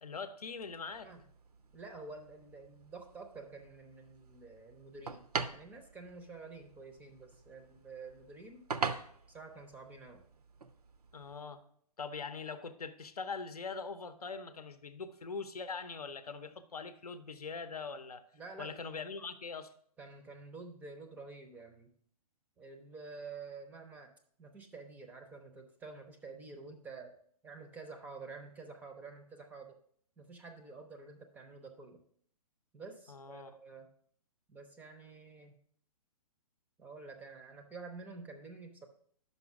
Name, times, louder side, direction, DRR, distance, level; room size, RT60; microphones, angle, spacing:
voice 1, 0.0-1.1 11.1-11.6 12.0-18.2 18.6-19.7 33.1-33.5, left 4 dB, 75° left, 10 dB, 0.7 m, -42 dB
sound 1, 0.6-11.4, right 5 dB, 75° right, 0.6 m, -44 dB
voice 2, 1.7-5.3 5.5-8.7 9.3-10.2 18.3-18.9 20.0-21.9 22.6-24.1 24.4-27.2 27.4-29.8 30.2-32.0 32.7-33.9 34.5-35.6 36.8-38.9, right 4 dB, 10° right, 5 dB, 0.5 m, -49 dB
5.5 x 5.3 x 5.9 m, 0.62 s
figure-of-eight pair, 120°, 20 cm